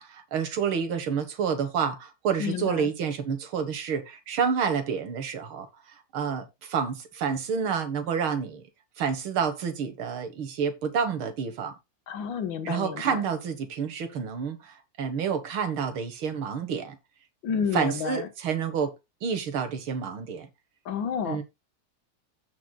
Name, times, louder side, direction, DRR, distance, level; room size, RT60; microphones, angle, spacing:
voice 1, 0.0-5.7 6.1-8.6 9.0-11.8 12.7-17.0 17.7-18.9 19.2-20.5 21.3-21.4, right 6 dB, 80° right, 2.4 m, -29 dB
voice 2, 2.4-2.9 12.1-13.2 17.4-18.3 20.9-21.4, left 7 dB, 70° left, 1.9 m, -30 dB
15.5 x 5.9 x 2.3 m
omnidirectional pair, 2.2 m